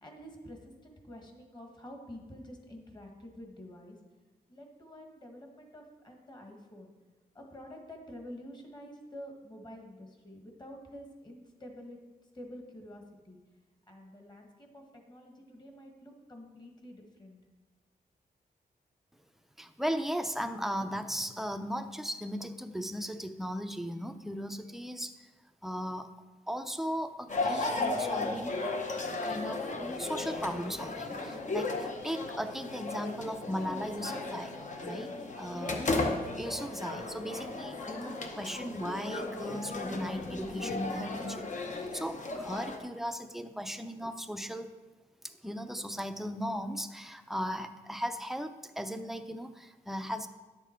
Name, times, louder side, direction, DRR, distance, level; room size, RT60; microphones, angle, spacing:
voice 1, 0.0-4.0 4.5-6.9 7.3-12.0 12.3-13.4 13.9-17.4, equal, 25° left, 2 dB, 1.6 m, -48 dB
voice 2, 19.6-25.1 25.6-26.1 26.5-28.7 29.2-34.5 34.8-35.8 36.3-41.5 41.9-44.7 45.2-50.3, equal, ahead, 8 dB, 0.5 m, -37 dB
sound 1, 27.3-42.8, left 2 dB, 50° left, 0.9 m, -35 dB
11.0 x 7.1 x 4.4 m, 1.2 s
wide cardioid pair, 130°, 16 cm